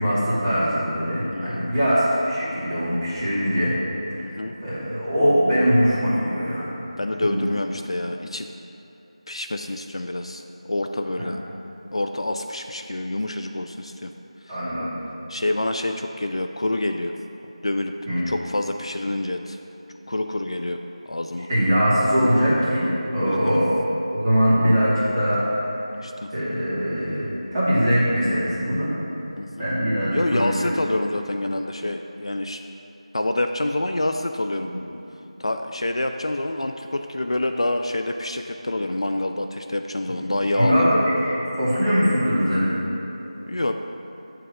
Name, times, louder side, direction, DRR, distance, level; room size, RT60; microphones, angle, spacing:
voice 1, 0.0-3.7 4.1-4.3 4.6-6.7 7.2-7.4 11.2-11.3 14.5-15.0 18.1-18.2 21.5-23.7 24.1-25.4 26.3-28.9 29.6-30.7 34.6-34.8 40.1-41.0 41.2-42.8, equal, 5° right, -14 dB, 1.2 m, -22 dB
voice 2, 1.3-1.7 4.2-4.5 7.0-8.5 9.3-11.4 11.9-14.1 14.5-14.6 15.3-17.1 17.6-17.9 18.2-19.6 20.1-21.5 23.3-23.6 26.0-26.3 29.4-29.7 30.1-32.6 33.1-34.7 35.4-40.9 43.5-43.7, left 1 dB, 55° left, 6 dB, 0.4 m, -27 dB
8.7 x 4.7 x 5.0 m, 3.0 s
figure-of-eight pair, 175°, 4 cm